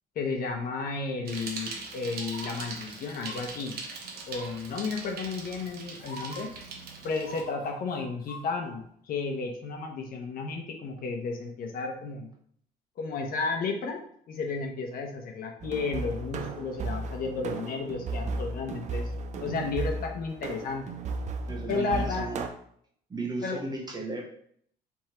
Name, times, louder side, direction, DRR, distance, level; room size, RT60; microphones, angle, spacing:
voice 1, 0.2-3.8 4.3-6.5 7.0-12.3 13.0-14.0 14.3-19.1 19.4-20.8 21.7-22.3 23.4-23.6, left 4 dB, 60° left, 2 dB, 0.9 m, -33 dB
Bicycle, 1.3-7.4, right 4 dB, 65° right, 1.0 m, -41 dB
sound 1, 2.1-2.5 3.1-3.4 4.3-4.7 5.5-5.6 6.0-6.4 7.2-8.4 8.8-8.9, left 1 dB, 85° left, 1.3 m, -44 dB
sound 2, 15.6-22.5, right 3 dB, 45° right, 0.5 m, -35 dB
voice 2, 21.5-22.5 23.1-24.3, right 3 dB, 25° right, 0 dB, 1.1 m, -35 dB
3.6 x 3.1 x 4.4 m, 0.63 s
cardioid pair, 110°, 17 cm